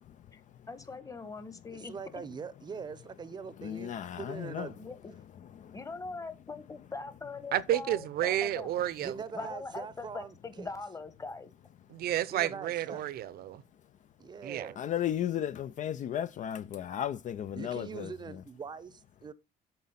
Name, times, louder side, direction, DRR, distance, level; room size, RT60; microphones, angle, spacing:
voice 1, 0.7-2.2 4.8-5.1 5.7-8.7 9.3-11.5, left 3 dB, 20° left, 1.2 m, -42 dB
voice 2, 1.7-4.8 9.0-10.7 12.3-13.0 14.2-14.8 17.6-19.3, right 5 dB, 25° right, 0.7 m, -42 dB
voice 3, 3.6-4.7 14.8-18.4, left 10 dB, 45° left, 0.4 m, -34 dB
voice 4, 7.5-9.2 11.9-13.6 14.4-14.7, right 12 dB, 65° right, 0.7 m, -31 dB
7.7 x 4.2 x 5.7 m
cardioid pair, 110°, 17 cm